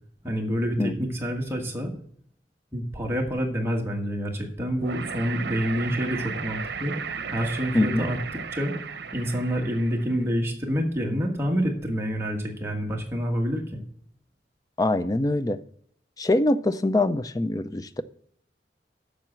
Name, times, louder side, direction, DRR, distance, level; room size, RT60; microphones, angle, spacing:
voice 1, 0.2-1.9 2.7-6.9 7.3-8.2 8.5-8.7 9.1-13.8, equal, 15° right, 0 dB, 1.5 m, -27 dB
sound 1, 4.8-10.2, right 5 dB, 75° right, 0.8 m, -35 dB
voice 2, 7.7-8.1 14.8-15.6 16.2-18.0, left 2 dB, 20° left, 13 dB, 0.4 m, -23 dB
7.5 x 6.5 x 7.3 m, 0.64 s
head